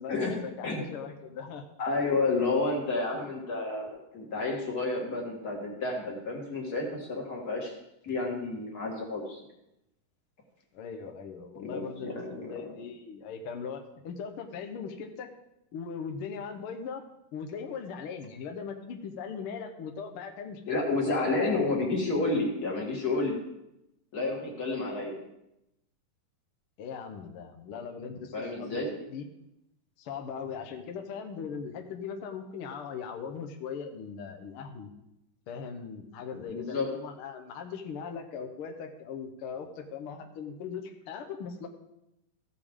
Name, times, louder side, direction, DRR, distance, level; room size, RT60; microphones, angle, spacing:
voice 1, 0.0-1.6 3.1-3.3 10.7-15.3 15.7-17.0 17.3-21.7 26.8-29.3 30.0-34.9 35.5-41.7, left 6 dB, 75° left, 4 dB, 1.2 m, -39 dB
voice 2, 1.8-7.7 8.0-9.4 11.6-12.5 20.7-23.4 24.1-25.1 28.3-28.9 36.3-36.9, left 3 dB, 35° left, -1 dB, 1.8 m, -30 dB
15.5 x 6.8 x 3.6 m, 0.86 s
omnidirectional pair, 3.8 m